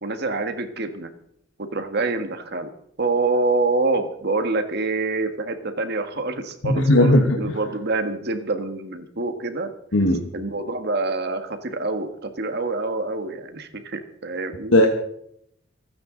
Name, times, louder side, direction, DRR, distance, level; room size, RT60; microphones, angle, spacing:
voice 1, 0.0-1.1 1.6-2.7 3.0-9.7 10.3-14.8, right 3 dB, 55° right, 7 dB, 1.6 m, -26 dB
voice 2, 6.6-7.4 9.9-10.2 14.7-14.9, left 1 dB, 75° left, 2 dB, 1.4 m, -16 dB
27.5 x 9.5 x 3.9 m, 0.73 s
head